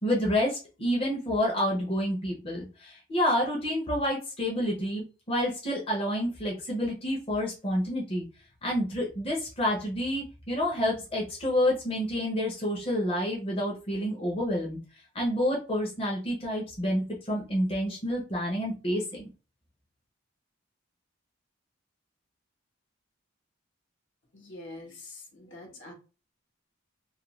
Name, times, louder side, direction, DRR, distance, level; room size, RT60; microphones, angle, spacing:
voice 1, 0.0-8.3 8.6-14.8 15.1-19.3, equal, 30° left, -3 dB, 0.7 m, -29 dB
voice 2, 24.3-25.9, left 2 dB, 70° left, 0 dB, 1.1 m, -45 dB
2.5 x 2.2 x 3.0 m, 0.33 s
head